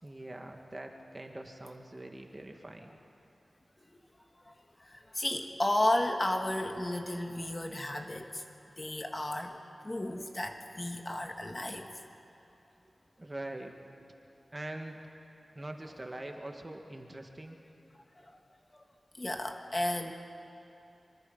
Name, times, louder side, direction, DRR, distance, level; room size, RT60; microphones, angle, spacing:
voice 1, 0.0-3.0 13.2-13.7 14.5-15.0 15.6-17.6, right 1 dB, 30° right, 3 dB, 2.0 m, -43 dB
voice 2, 4.8-8.4 8.8-11.9 18.2-18.4 18.7-18.8 19.2-20.1, left 1 dB, 30° left, 4 dB, 1.6 m, -33 dB
25.0 x 24.0 x 5.6 m, 2.7 s
wide cardioid pair, 65°, 0 cm